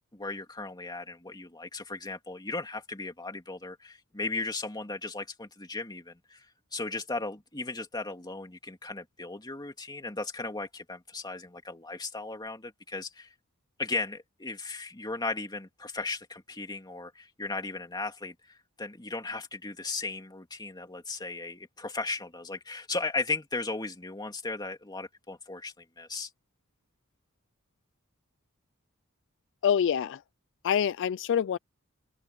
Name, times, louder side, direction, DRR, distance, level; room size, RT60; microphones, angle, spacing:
voice 1, 0.1-6.5 6.7-13.3 13.8-26.3, left 3 dB, 20° left, 2.5 m, -36 dB
voice 2, 29.6-30.2 30.6-31.6, left 8 dB, 60° left, 0.3 m, -26 dB
open air
head